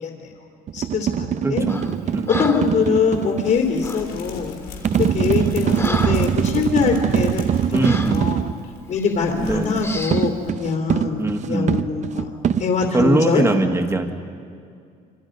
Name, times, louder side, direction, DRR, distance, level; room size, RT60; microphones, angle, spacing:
voice 1, 0.0-0.4 0.7-1.6 2.3-4.5 5.0-7.4 7.7-8.4 8.9-12.3 12.6-13.4, left 5 dB, 60° left, 1 dB, 3.1 m, -23 dB
sound 1, 0.7-3.6 4.8-8.6 10.1-13.1, right 8 dB, 45° right, 0.7 m, -22 dB
voice 2, 1.4-1.8 2.1-2.3 7.7-8.3 9.4-9.8 11.2-11.7 12.9-14.1, right 2 dB, 15° right, 5 dB, 1.7 m, -21 dB
Breathing, 1.7-2.0 2.3-2.8 3.8-4.1 4.8-4.9 5.3-6.4 6.9-7.0 7.8-8.2 8.9-9.2 9.8-10.3, left 2 dB, 15° left, 2.0 m, -31 dB
sound 2, 3.5-10.6 10.8-10.9 11.2-11.3, left 6 dB, 80° left, 5.0 m, -38 dB
26.0 x 26.0 x 5.3 m, 2.3 s
cardioid pair, 110°, 17 cm